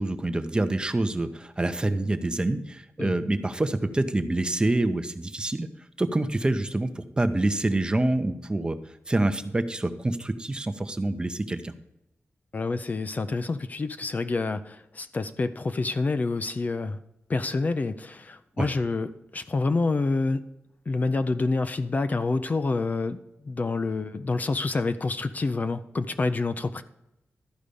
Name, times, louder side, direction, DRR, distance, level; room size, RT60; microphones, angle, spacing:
voice 1, 0.0-5.7 6.0-8.8 9.1-11.7 18.6-18.7, right 2 dB, 20° right, 10 dB, 0.7 m, -26 dB
voice 2, 12.5-17.0 17.3-20.4 20.9-26.8, left 3 dB, 35° left, 10 dB, 0.5 m, -27 dB
12.5 x 5.1 x 6.7 m, 0.90 s
wide cardioid pair, 140°, 5 cm